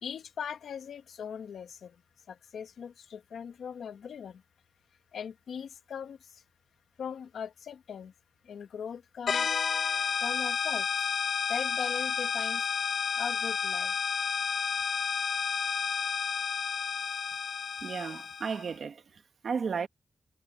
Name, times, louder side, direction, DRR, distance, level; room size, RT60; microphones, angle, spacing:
voice 1, 0.0-2.0 2.3-4.4 5.1-6.4 7.0-8.1 8.4-9.5 10.2-11.1 11.5-12.7 13.1-13.9, left 7 dB, 80° left, 1.6 m, -40 dB
sound 1, 9.3-18.7, left 6 dB, 65° left, 1.1 m, -31 dB
voice 2, 17.8-19.9, right 6 dB, 55° right, 1.9 m, -34 dB
wide cardioid pair, 140°, 0 cm